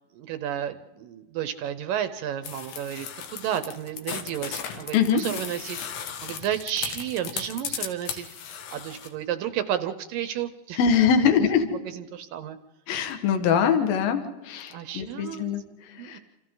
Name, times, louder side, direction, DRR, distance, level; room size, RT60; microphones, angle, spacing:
voice 1, 0.1-5.8 6.2-8.3 8.7-10.8 11.9-12.6 14.7-15.5 16.0-16.2, right 10 dB, 75° right, 11 dB, 2.1 m, -32 dB
sound 1, 2.4-9.1, left 8 dB, 85° left, 3.9 m, -36 dB
voice 2, 10.8-11.7 12.9-16.2, left 7 dB, 65° left, 7 dB, 3.3 m, -23 dB
28.0 x 28.0 x 3.9 m, 1.2 s
omnidirectional pair, 4.6 m